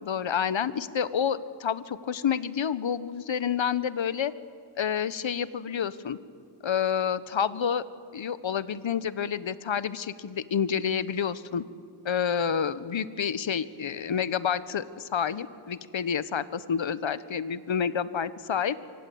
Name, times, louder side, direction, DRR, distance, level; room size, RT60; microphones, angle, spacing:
voice 1, 0.0-4.3 4.8-6.2 6.6-7.8 8.1-11.6 12.0-18.8, left 7 dB, 65° left, 15 dB, 1.1 m, -29 dB
26.0 x 24.5 x 8.6 m, 2.3 s
wide cardioid pair, 85°, 50 cm